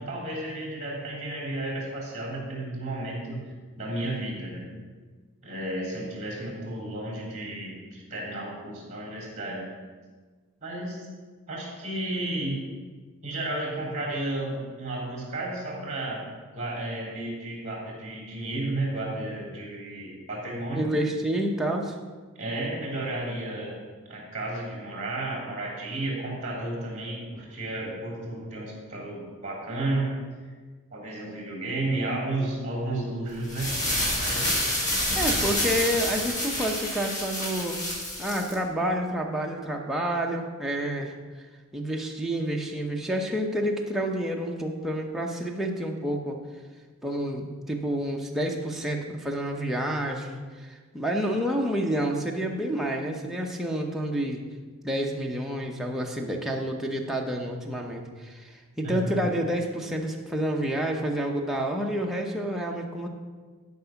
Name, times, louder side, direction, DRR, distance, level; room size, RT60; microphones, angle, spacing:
voice 1, 0.0-3.4 3.8-4.6 5.4-9.6 10.6-11.1 11.5-12.6 13.2-16.2 16.5-20.9 22.4-23.7 24.1-30.1 30.9-34.6 58.8-59.2, right 2 dB, 30° right, -3 dB, 3.0 m, -32 dB
voice 2, 20.7-21.9 35.2-37.8 38.2-41.1 41.7-46.4 47.0-54.4 54.8-63.1, right 1 dB, ahead, -1 dB, 0.8 m, -29 dB
sound 1, 33.4-38.5, left 1 dB, 35° left, 2.0 m, -28 dB
12.0 x 5.4 x 5.8 m, 1.5 s
head